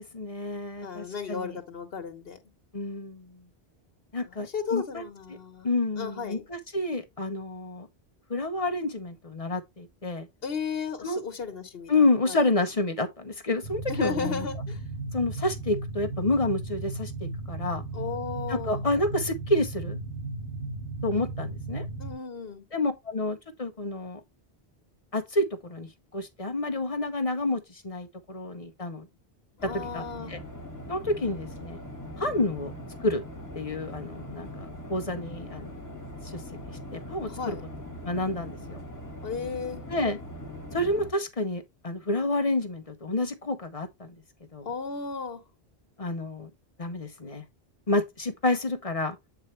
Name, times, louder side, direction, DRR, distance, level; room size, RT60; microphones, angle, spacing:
voice 1, 0.0-1.6 2.7-3.3 4.1-5.0 5.6-7.9 8.3-10.3 11.0-11.2 11.9-14.5 15.1-17.8 18.5-20.0 21.0-21.9 22.7-24.2 25.1-29.1 29.6-30.4 30.9-31.8 32.2-32.7 33.0-33.2 33.5-35.7 36.2-36.4 36.7-37.6 38.0-38.8 39.9-40.2 40.7-44.2 44.5-44.7 46.0-46.5 46.8-47.4 47.9-49.2, left 2 dB, 35° left, 0.9 m, -29 dB
voice 2, 0.8-2.4 4.2-5.7 6.0-6.5 10.4-11.9 12.3-12.4 13.9-14.8 17.9-18.8 22.0-22.6 29.6-30.3 37.3-37.6 39.2-39.8 44.6-45.4, left 5 dB, 70° left, 1.4 m, -34 dB
sound 1, 13.6-22.1, right 2 dB, 35° right, 5.1 m, -35 dB
sound 2, 29.6-41.1, left 1 dB, 15° left, 1.8 m, -41 dB
8.0 x 4.6 x 3.1 m
omnidirectional pair, 1.0 m